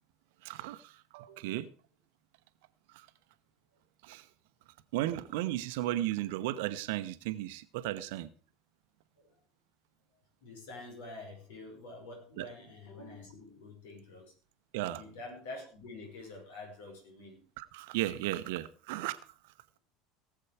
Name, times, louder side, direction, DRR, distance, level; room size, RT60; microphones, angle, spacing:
voice 1, 0.4-1.7 2.9-3.1 4.0-4.2 4.9-8.3 12.4-12.5 14.7-15.0 17.6-19.2, right 15 dB, 60° right, 1.0 m, -35 dB
voice 2, 10.4-14.3 14.8-17.4, left 2 dB, 65° left, 5.5 m, -47 dB
18.5 x 7.9 x 4.9 m
figure-of-eight pair, 70°, 0 cm